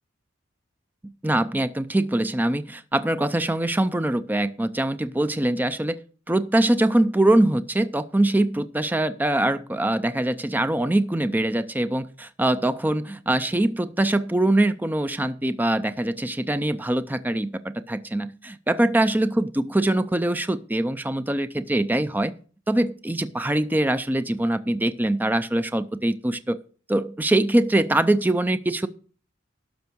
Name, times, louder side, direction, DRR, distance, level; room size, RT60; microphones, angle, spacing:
voice 1, 1.2-6.0 6.3-22.3 22.7-26.6 26.9-28.9, right 1 dB, 10° right, 12 dB, 0.5 m, -23 dB
12.5 x 5.7 x 6.1 m, 0.39 s
head